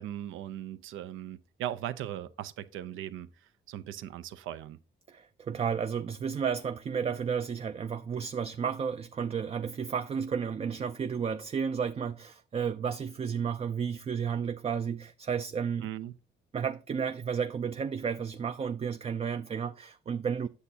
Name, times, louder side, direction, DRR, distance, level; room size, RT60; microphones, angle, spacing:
voice 1, 0.0-3.3 3.7-4.8 15.8-16.1, right 11 dB, 85° right, 0.6 m, -38 dB
voice 2, 5.1-15.9 16.5-20.5, right 7 dB, 30° right, 0.4 m, -32 dB
8.2 x 6.9 x 2.8 m
cardioid pair, 90°, 20 cm